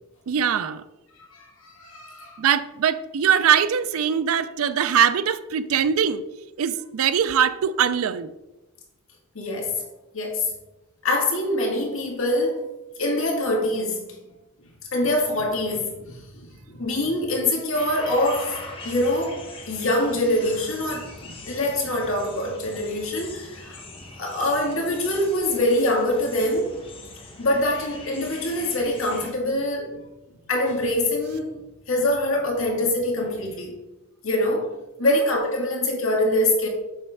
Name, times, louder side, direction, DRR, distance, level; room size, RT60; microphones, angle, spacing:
voice 1, 0.3-0.8 2.4-6.2 6.6-8.3 35.0-35.2, right 8 dB, 75° right, 0.4 m, -22 dB
voice 2, 1.3-2.4 9.3-9.8 10.1-10.5 11.0-12.7 13.0-14.2 14.9-23.8 24.2-26.8 27.4-30.0 30.5-31.6 31.9-33.8 34.2-34.7 35.0-36.7, left 1 dB, 65° left, 1.9 m, -24 dB
sound 1, 17.7-29.3, left 2 dB, 25° left, 0.9 m, -42 dB
7.2 x 3.2 x 5.6 m
head